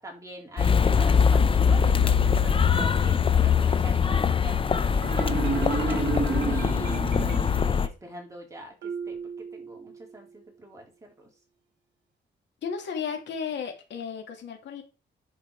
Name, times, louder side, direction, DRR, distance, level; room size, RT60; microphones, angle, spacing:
voice 1, 0.0-11.3, right 1 dB, 15° right, 0 dB, 3.8 m, -44 dB
sound 1, 0.6-7.9, left 6 dB, 30° left, 0.7 m, -22 dB
Marimba xylophone, 5.0-7.8, right 4 dB, 70° right, 2.0 m, -30 dB
Marimba xylophone 2, 8.8-10.6, right 6 dB, 85° right, 1.3 m, -39 dB
voice 2, 12.6-14.8, left 6 dB, 75° left, 3 dB, 2.7 m, -34 dB
11.0 x 4.8 x 4.9 m, 0.32 s
cardioid pair, 125°, 19 cm